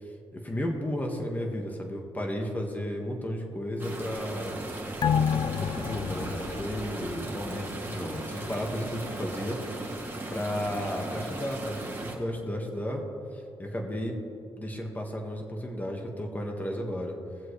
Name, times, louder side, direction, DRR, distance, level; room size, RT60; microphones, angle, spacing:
voice 1, 0.3-4.7 5.6-9.9 10.3-13.0 13.3-14.2 14.6-17.2, equal, 15° left, 1 dB, 1.8 m, -33 dB
sound 1, 3.8-12.2, right 2 dB, 20° right, 2.2 m, -37 dB
sound 2, 5.0-7.9 8.3-8.4, left 7 dB, 45° left, 0.4 m, -30 dB
19.5 x 7.6 x 3.3 m, 2.7 s
cardioid pair, 95°, 10 cm